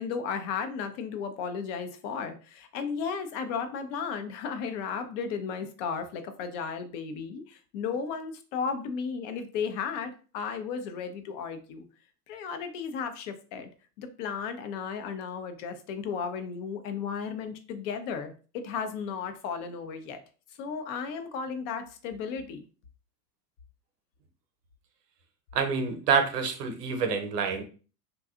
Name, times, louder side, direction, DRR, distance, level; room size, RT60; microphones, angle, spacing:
voice 1, 0.0-11.9 12.3-13.7 14.0-20.2 20.6-22.6, left 6 dB, 50° left, 8 dB, 0.6 m, -34 dB
voice 2, 25.5-27.6, right 5 dB, 80° right, 7 dB, 0.8 m, -27 dB
2.7 x 2.3 x 2.3 m, 0.37 s
hypercardioid pair, 110°, 48 cm